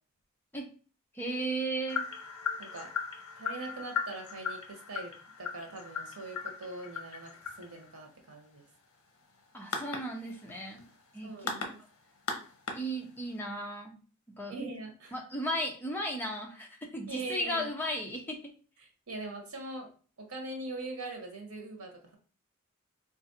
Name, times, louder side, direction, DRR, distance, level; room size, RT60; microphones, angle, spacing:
voice 1, 1.1-2.0 9.5-10.8 11.1-11.5 12.7-14.0 14.4-14.6 15.1-18.4, right 1 dB, 10° left, 0 dB, 0.6 m, -35 dB
sound 1, 1.9-13.4, left 5 dB, 80° left, 0.6 m, -39 dB
voice 2, 2.6-2.9 3.4-5.1 5.4-7.3 7.6-8.6 11.2-11.8 14.5-15.1 17.1-17.7 19.1-19.9 20.2-22.2, right 2 dB, 85° right, 3 dB, 0.9 m, -41 dB
3.9 x 2.4 x 2.6 m, 0.39 s
head